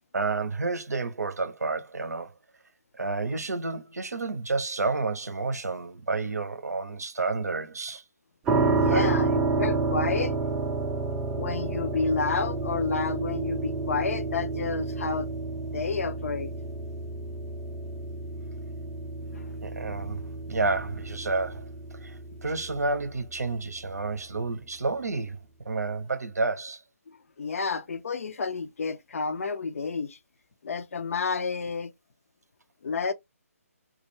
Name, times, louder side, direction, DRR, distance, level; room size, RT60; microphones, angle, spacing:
voice 1, 0.1-2.3 3.0-8.0 8.9-9.1 19.3-20.2 20.5-21.7 22.0-25.4 25.7-26.8, right 3 dB, 85° right, 0.6 m, -30 dB
sound 1, 8.5-23.3, right 3 dB, 10° right, 0.4 m, -30 dB
voice 2, 8.8-10.4 11.3-15.3 15.7-16.5 19.3-19.5 27.1-30.2 30.6-31.9 32.8-33.1, left 4 dB, 60° left, 0.5 m, -30 dB
2.3 x 2.1 x 3.0 m
figure-of-eight pair, 150°, 8 cm